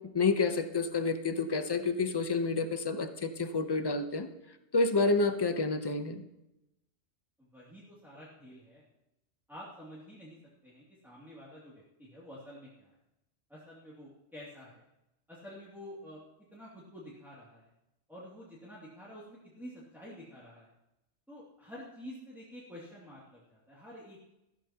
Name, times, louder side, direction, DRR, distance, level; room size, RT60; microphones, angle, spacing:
voice 1, 0.1-4.3 4.7-6.2, left 3 dB, 25° left, 8 dB, 0.8 m, -29 dB
voice 2, 7.5-8.8 9.5-10.4 10.6-12.9 13.5-14.8 15.3-16.2 16.5-17.7 18.1-20.7 21.3-24.3, equal, ahead, -8 dB, 2.5 m, -49 dB
14.5 x 13.5 x 2.9 m, 0.92 s
omnidirectional pair, 1.2 m